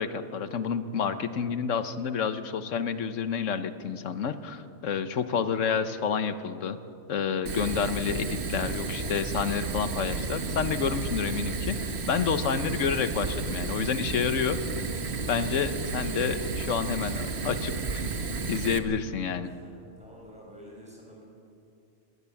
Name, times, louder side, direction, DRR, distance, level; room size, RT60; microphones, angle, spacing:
voice 1, 0.0-6.8 7.1-14.6 15.3-18.1 18.5-19.5, left 7 dB, 70° left, 11 dB, 1.3 m, -29 dB
Fire, 7.5-18.8, right 4 dB, 55° right, 1.4 m, -32 dB
voice 2, 19.4-21.2, equal, 5° right, -3 dB, 6.0 m, -49 dB
21.0 x 18.0 x 7.2 m, 2.6 s
omnidirectional pair, 1.3 m